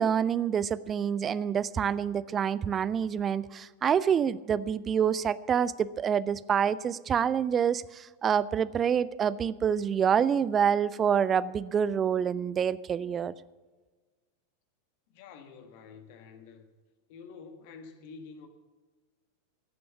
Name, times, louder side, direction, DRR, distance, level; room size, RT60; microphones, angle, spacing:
voice 1, 0.0-13.3, right 8 dB, 25° right, 18 dB, 0.4 m, -27 dB
voice 2, 15.1-16.7 17.1-18.5, left 5 dB, 45° left, 7 dB, 1.5 m, -48 dB
14.5 x 6.9 x 7.0 m, 1.3 s
figure-of-eight pair, 90°, 0 cm